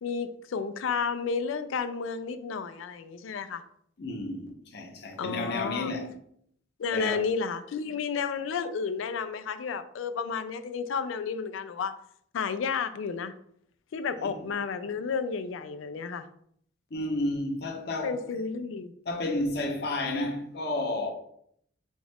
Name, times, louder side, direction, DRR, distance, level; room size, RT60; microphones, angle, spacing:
voice 1, 0.0-3.6 5.2-5.9 6.8-11.9 12.3-13.3 13.9-16.3 18.0-18.9, left 5 dB, 90° left, 0.4 m, -32 dB
voice 2, 4.0-6.2 6.9-7.2 14.2-14.3 16.9-18.2 19.1-21.1, left 2 dB, 55° left, 0.7 m, -31 dB
5.1 x 2.4 x 3.4 m
head